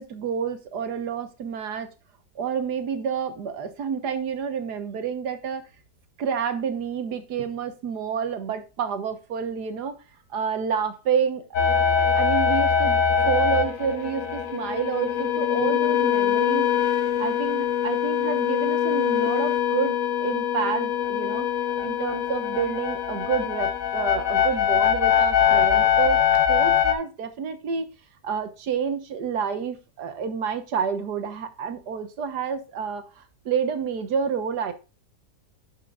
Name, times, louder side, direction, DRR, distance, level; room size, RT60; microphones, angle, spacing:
voice 1, 0.0-1.9 2.3-5.6 6.2-9.9 10.3-11.4 11.8-16.7 17.2-21.5 21.8-26.2 26.5-27.9 28.2-34.7, right 7 dB, 75° right, 1.6 m, -29 dB
sound 1, 11.5-26.9, left 8 dB, 55° left, 1.3 m, -23 dB
11.5 x 5.8 x 2.4 m
omnidirectional pair, 1.8 m